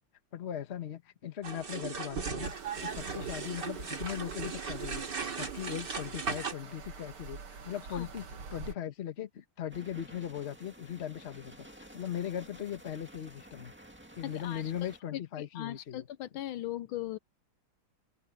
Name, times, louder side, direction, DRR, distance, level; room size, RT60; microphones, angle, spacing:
voice 1, 0.3-2.5 2.8-13.7 14.1-16.1, left 10 dB, 40° left, 1.1 m, -39 dB
sound 1, 1.4-6.5, right 5 dB, 50° right, 3.3 m, -37 dB
sound 2, 2.4-8.7, right 5 dB, 75° right, 2.9 m, -47 dB
sound 3, 9.7-15.0, right 1 dB, 5° right, 1.7 m, -53 dB
voice 2, 14.2-17.2, left 13 dB, 75° left, 1.4 m, -39 dB
open air
omnidirectional pair, 2.4 m